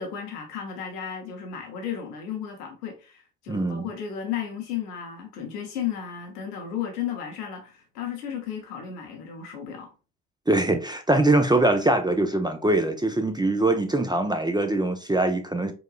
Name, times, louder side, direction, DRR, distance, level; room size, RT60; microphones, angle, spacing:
voice 1, 0.0-9.9, left 8 dB, 85° left, 0.8 m, -34 dB
voice 2, 3.5-3.9 10.5-15.7, right 2 dB, 10° right, 0.4 m, -23 dB
4.7 x 2.2 x 2.3 m
hypercardioid pair, 45°, 46 cm